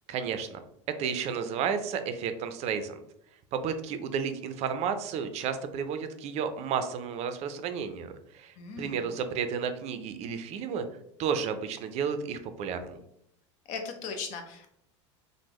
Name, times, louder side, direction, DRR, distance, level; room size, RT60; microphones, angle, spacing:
voice 1, 0.1-3.0 3.5-10.8 11.2-13.0, right 7 dB, 45° right, 9 dB, 0.4 m, -32 dB
voice 2, 8.6-9.0 13.7-14.7, left 5 dB, 50° left, 5 dB, 0.7 m, -38 dB
3.4 x 2.1 x 3.0 m, 0.74 s
hypercardioid pair, 95°, 16 cm